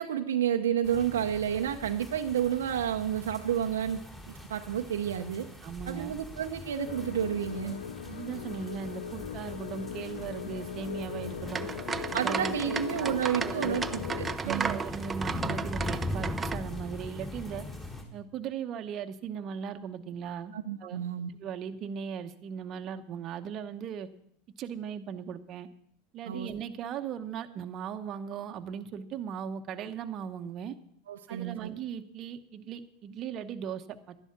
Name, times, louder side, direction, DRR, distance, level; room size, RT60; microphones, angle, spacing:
voice 1, 0.0-4.0 4.5-5.5 5.9-7.8 12.1-14.8 20.5-21.3 26.3-26.5 31.1-31.6, right 9 dB, 85° right, 4 dB, 0.7 m, -30 dB
sound 1, 0.8-18.0, left 2 dB, 15° left, 3.8 m, -41 dB
voice 2, 5.6-6.1 8.1-11.7 12.1-13.1 13.4-13.8 14.4-17.6 18.1-20.5 20.8-21.0 21.4-24.1 24.6-25.7 26.1-30.7 31.3-34.2, right 7 dB, 45° right, 7 dB, 0.9 m, -38 dB
sound 2, 6.9-14.4, left 8 dB, 80° left, 0.6 m, -39 dB
sound 3, 11.5-16.6, right 5 dB, 20° right, 0.7 m, -34 dB
12.0 x 11.0 x 5.8 m, 0.67 s
hypercardioid pair, 95°, 0 cm